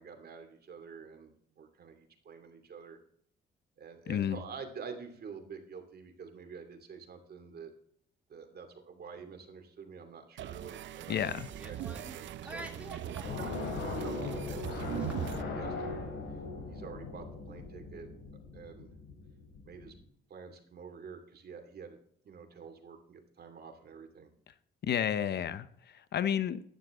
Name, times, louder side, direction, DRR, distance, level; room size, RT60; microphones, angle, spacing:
voice 1, 0.0-3.0 3.8-7.7 8.3-11.3 11.7-14.8 15.2-15.9 16.7-18.1 18.5-18.9 19.6-19.9 20.3-22.0 22.2-24.3, right 5 dB, 50° right, 4 dB, 2.7 m, -48 dB
voice 2, 4.1-4.4 11.1-11.5 24.8-25.7 26.1-26.6, left 9 dB, 55° left, 14 dB, 0.8 m, -30 dB
sound 1, 10.4-15.4, right 12 dB, 70° right, 0.5 m, -41 dB
sound 2, 11.0-15.4, right 1 dB, 5° right, 1.9 m, -49 dB
sound 3, 13.2-20.0, left 3 dB, 75° left, 3.8 m, -39 dB
11.0 x 10.0 x 3.8 m, 0.63 s
cardioid pair, 90°, 20 cm